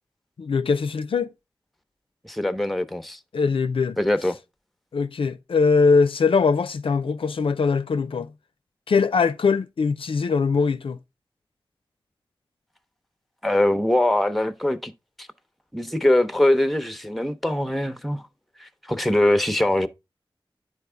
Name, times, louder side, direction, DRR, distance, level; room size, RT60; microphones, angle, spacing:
voice 1, 0.4-1.3 3.3-4.0 4.9-8.3 8.9-11.0, left 5 dB, 85° left, 0.4 m, -21 dB
voice 2, 2.2-3.2 4.0-4.4 13.4-14.9 15.2-15.3 15.7-18.2 18.6-19.9, left 1 dB, ahead, 0.7 m, -22 dB
9.7 x 4.3 x 3.3 m
wide cardioid pair, 50°, 9 cm